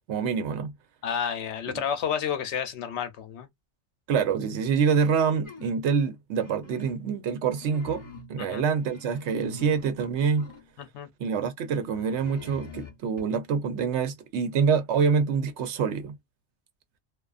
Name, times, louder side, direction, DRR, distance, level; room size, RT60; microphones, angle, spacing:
voice 1, 0.1-0.7 4.1-8.0 8.3-10.5 11.2-16.2, right 6 dB, 75° right, 0.9 m, -26 dB
voice 2, 1.0-3.5 8.4-8.6 10.8-11.1, left 8 dB, 75° left, 0.9 m, -30 dB
sound 1, 5.4-5.8 6.3-7.1 7.4-8.4 8.8-10.7 11.8-13.2, left 3 dB, 30° left, 0.6 m, -46 dB
2.4 x 2.4 x 2.3 m
omnidirectional pair, 1.2 m